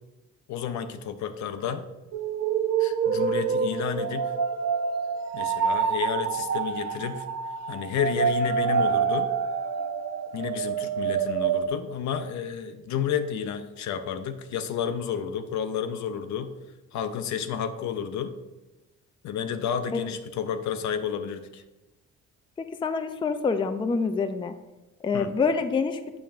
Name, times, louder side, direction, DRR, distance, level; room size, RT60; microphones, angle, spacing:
voice 1, 0.5-1.8 2.8-4.3 5.3-7.3 7.7-9.3 10.3-16.5 16.9-18.3 19.2-21.6 25.1-25.3, left 8 dB, 70° left, 9 dB, 0.6 m, -31 dB
sound 1, 2.1-11.7, right 6 dB, 60° right, 0.6 m, -27 dB
voice 2, 22.8-24.5 25.0-26.0, left 5 dB, 15° left, 9 dB, 0.4 m, -26 dB
7.3 x 5.7 x 2.5 m, 1.1 s
cardioid pair, 90°, 30 cm